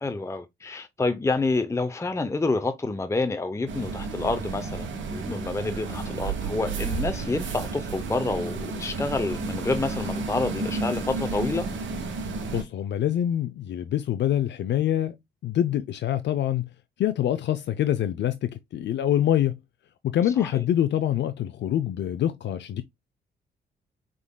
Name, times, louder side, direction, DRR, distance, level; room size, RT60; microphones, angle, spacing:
voice 1, 0.0-11.7 20.4-20.6, left 3 dB, 15° left, 0.6 m, -28 dB
sound 1, 3.7-12.6, right 3 dB, 80° right, 1.3 m, -32 dB
voice 2, 12.5-15.1 15.4-16.7 17.0-19.6 20.0-22.8, left 11 dB, 70° left, 0.5 m, -25 dB
4.8 x 3.7 x 2.2 m
cardioid pair, 75°, 19 cm